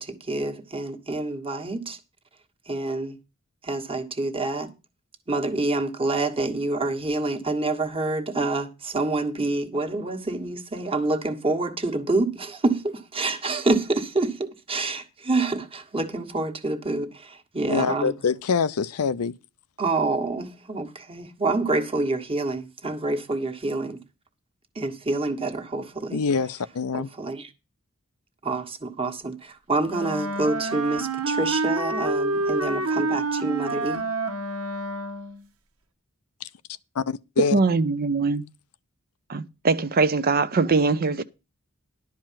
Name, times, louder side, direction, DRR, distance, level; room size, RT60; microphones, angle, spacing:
voice 1, 0.0-2.0 2.7-3.2 3.6-4.7 5.3-18.1 19.8-24.0 24.7-26.2 26.9-27.5 28.4-34.0, right 2 dB, 25° right, 1.4 m, -27 dB
voice 2, 17.7-19.3 26.1-27.1 37.0-37.5, left 5 dB, 85° left, 0.6 m, -25 dB
Wind instrument woodwind instrument, 29.9-35.4, right 2 dB, 80° right, 1.4 m, -27 dB
voice 3, 37.5-38.4 39.3-41.2, right 4 dB, 45° right, 0.7 m, -22 dB
11.5 x 4.8 x 7.5 m
head